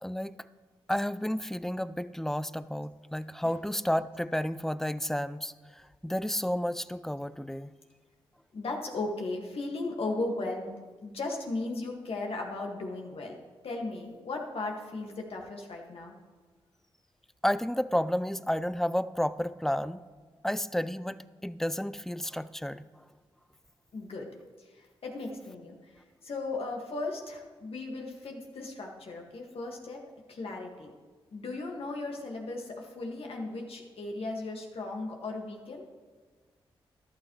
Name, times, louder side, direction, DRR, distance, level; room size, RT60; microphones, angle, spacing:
voice 1, 0.0-0.4 0.9-7.7 17.4-20.0 20.4-22.9, equal, 5° left, 15 dB, 0.5 m, -31 dB
voice 2, 8.5-10.7 11.0-13.4 13.6-16.1 23.9-24.3 24.6-30.0 30.3-30.9 31.3-35.9, left 2 dB, 70° left, 0 dB, 2.2 m, -36 dB
14.0 x 12.0 x 3.3 m, 1.5 s
cardioid pair, 50°, 10 cm